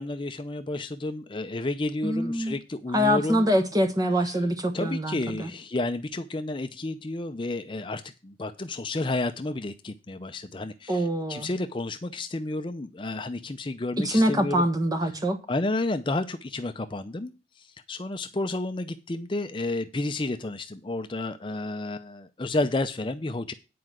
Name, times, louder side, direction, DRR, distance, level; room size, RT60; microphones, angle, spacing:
voice 1, 0.0-3.5 4.3-4.4 4.7-14.6 15.5-23.5, left 2 dB, 30° left, 0.5 m, -31 dB
voice 2, 2.0-2.5 2.9-5.5 10.9-11.5 14.0-15.4, equal, 20° right, 1.2 m, -24 dB
9.5 x 4.8 x 7.8 m
head